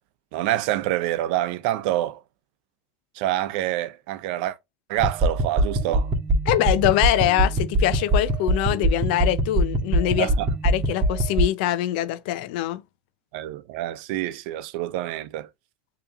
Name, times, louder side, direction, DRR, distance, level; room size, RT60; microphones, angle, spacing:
voice 1, 0.3-2.2 3.2-4.6 4.9-6.1 10.2-10.5 13.3-15.5, right 14 dB, 70° right, 0.7 m, -26 dB
sound 1, 5.0-11.4, right 1 dB, 25° right, 1.8 m, -23 dB
voice 2, 6.5-10.3 10.6-12.8, left 13 dB, 70° left, 0.6 m, -23 dB
6.9 x 3.0 x 2.4 m
hypercardioid pair, 95°, 5 cm